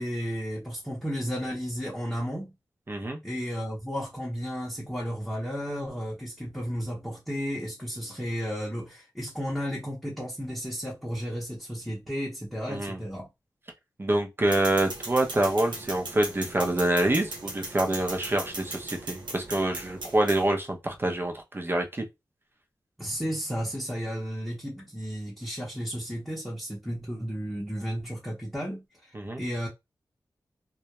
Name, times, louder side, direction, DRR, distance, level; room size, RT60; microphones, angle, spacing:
voice 1, 0.0-2.5 3.2-13.3 23.0-29.7, equal, ahead, 0.8 m, -33 dB
voice 2, 2.9-3.2 12.7-13.0 14.0-22.0 29.1-29.4, right 1 dB, 30° right, 0.6 m, -26 dB
sound 1, 14.5-20.5, right 2 dB, 85° right, 0.8 m, -38 dB
2.2 x 2.1 x 2.9 m
wide cardioid pair, 70°, 8 cm